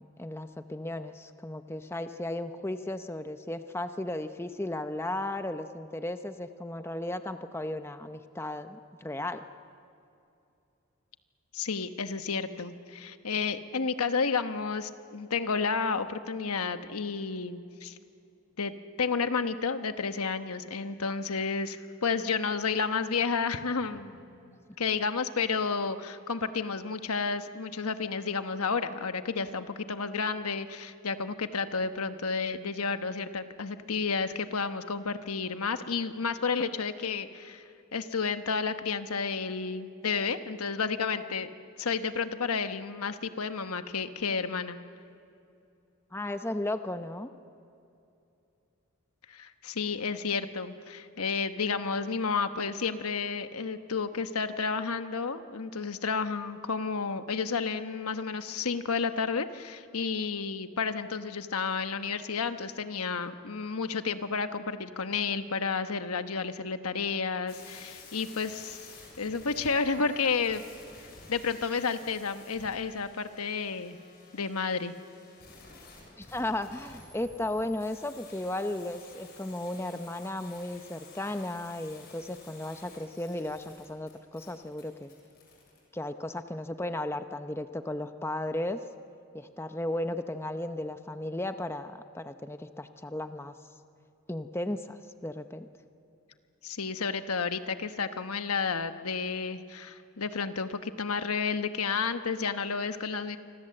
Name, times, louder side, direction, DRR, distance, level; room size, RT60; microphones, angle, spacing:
voice 1, 0.0-9.5 46.1-47.3 76.2-85.1 85.9-88.8 89.3-93.5 94.3-95.7, left 1 dB, 10° left, 9 dB, 0.7 m, -35 dB
voice 2, 11.5-18.0 18.6-37.6 37.9-41.5 41.8-44.8 49.3-68.8 69.2-70.6 71.3-74.0 74.3-75.0 96.6-103.4, left 5 dB, 85° left, 9 dB, 1.2 m, -31 dB
sound 1, 67.5-85.8, left 3 dB, 45° left, 7.5 m, -52 dB
28.0 x 25.5 x 7.8 m, 2.7 s
head